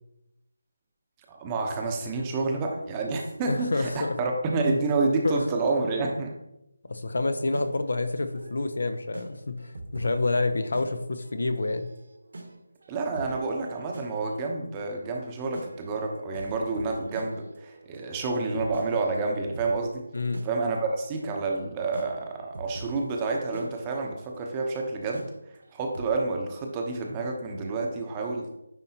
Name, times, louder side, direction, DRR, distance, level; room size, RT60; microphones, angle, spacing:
voice 1, 1.3-6.3 12.9-20.1 20.4-25.3 25.7-28.5, right 3 dB, 20° right, 2 dB, 0.8 m, -29 dB
voice 2, 3.5-4.2 5.2-5.4 6.9-11.9 20.1-20.4, left 2 dB, 65° left, 9 dB, 0.7 m, -28 dB
sound 1, 7.3-26.1, right 2 dB, 65° right, 1.2 m, -45 dB
9.5 x 4.0 x 2.8 m, 0.87 s
figure-of-eight pair, 165°, 0 cm